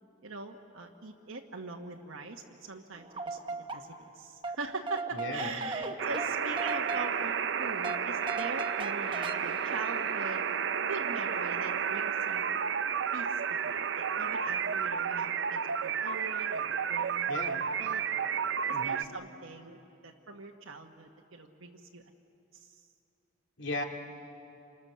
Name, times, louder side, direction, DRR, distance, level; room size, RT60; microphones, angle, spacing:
voice 1, 0.2-10.4 10.9-12.4 13.1-17.4 17.8-18.0 18.7-22.0 22.5-22.8, right 3 dB, 85° right, 2 dB, 1.3 m, -42 dB
sound 1, 2.9-4.2 4.4-10.6, right 3 dB, 25° right, 0.9 m, -39 dB
voice 2, 5.1-5.6 17.3-17.7 18.7-19.1 23.6-23.8, left 2 dB, 65° left, 2 dB, 2.3 m, -36 dB
sound 2, 6.0-19.0, right 7 dB, 60° right, 0.5 m, -32 dB
29.0 x 26.0 x 6.9 m, 2.8 s
head